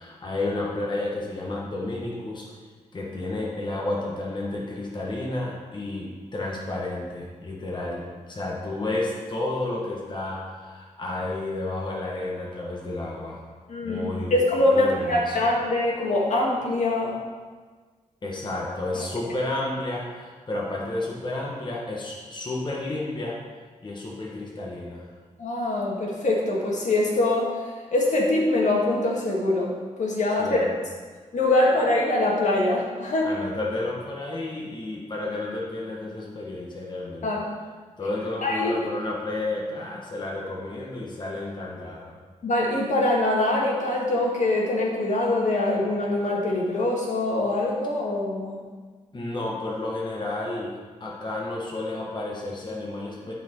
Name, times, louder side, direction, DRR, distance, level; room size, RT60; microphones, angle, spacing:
voice 1, 0.0-2.5 2.9-13.4 13.8-14.4 14.7-15.4 18.2-23.4 23.8-25.1 30.4-30.8 33.2-37.4 38.0-42.2 49.1-53.3, left 2 dB, 35° left, -3 dB, 1.5 m, -31 dB
voice 2, 13.7-17.1 19.0-19.1 25.4-27.5 27.9-29.7 30.0-30.6 31.3-33.3 37.2-37.5 38.4-38.8 42.4-48.6, left 2 dB, 65° left, -2 dB, 1.8 m, -23 dB
11.5 x 4.5 x 4.5 m, 1.5 s
cardioid pair, 80°, 13 cm